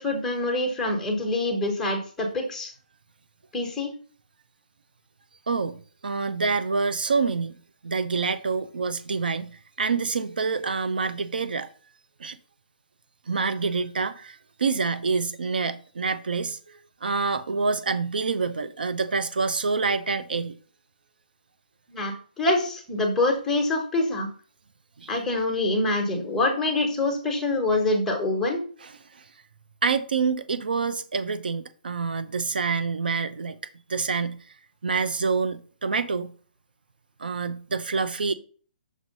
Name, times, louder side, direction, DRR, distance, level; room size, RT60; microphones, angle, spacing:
voice 1, 0.0-2.7 3.5-3.9 21.9-24.3 25.1-28.6, left 2 dB, 5° left, 1.2 m, -25 dB
voice 2, 5.5-5.8 6.0-7.5 7.8-9.5 9.8-11.7 12.2-12.4 13.3-20.6 25.0-25.1 28.8-29.2 29.8-33.6 33.9-34.4 34.8-36.3 37.2-38.3, right 4 dB, 85° right, 0.7 m, -27 dB
6.4 x 3.2 x 5.3 m
hypercardioid pair, 160°, 5 cm